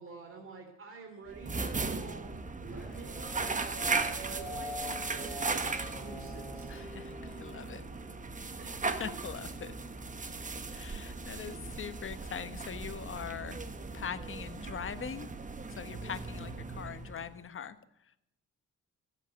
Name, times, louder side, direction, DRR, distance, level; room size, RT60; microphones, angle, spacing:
voice 1, 0.0-2.3 2.6-3.8 4.2-6.7 8.6-9.2 11.4-11.6 16.1-16.2, right 4 dB, 45° right, 3 dB, 3.5 m, -48 dB
sound 1, 1.3-17.4, right 3 dB, 25° right, 1.3 m, -37 dB
sound 2, 2.6-8.2, equal, ahead, 3.8 m, -44 dB
voice 2, 6.7-7.8 9.0-9.7 10.7-13.6 13.9-15.3 15.8-17.8, left 7 dB, 45° left, 12 dB, 1.1 m, -42 dB
14.0 x 8.4 x 8.7 m, 0.78 s
cardioid pair, 90°, 30 cm